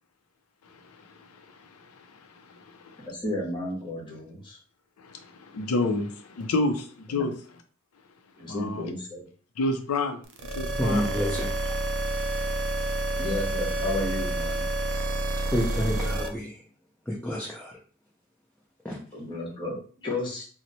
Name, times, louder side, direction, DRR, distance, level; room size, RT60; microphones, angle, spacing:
voice 1, 0.6-3.1 5.0-7.3 8.5-8.8 9.6-10.2 10.5-11.2, left 2 dB, 90° left, 0.5 m, -30 dB
voice 2, 3.1-4.6 7.1-7.3 8.4-9.3 13.2-14.7 19.1-20.5, left 2 dB, 20° left, 1.1 m, -33 dB
sound 1, 10.3-16.3, right 2 dB, 60° right, 0.5 m, -29 dB
voice 3, 10.8-11.5 15.5-16.5 17.1-17.7 18.8-19.0, equal, 5° left, 0.5 m, -29 dB
3.0 x 2.0 x 3.9 m
head